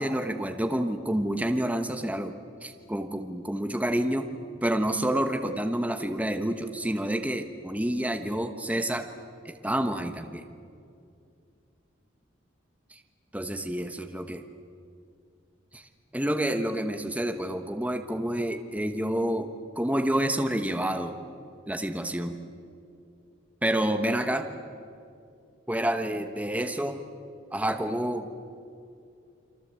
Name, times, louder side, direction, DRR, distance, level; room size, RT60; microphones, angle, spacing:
voice 1, 0.0-2.3 2.6-4.3 4.6-9.1 9.4-10.4 12.9-13.0 13.3-14.4 15.7-19.5 19.7-21.2 21.7-22.4 23.6-24.5 25.7-27.0 27.5-28.4, right 1 dB, 5° right, 6 dB, 1.1 m, -28 dB
29.5 x 24.0 x 8.2 m, 2.5 s
head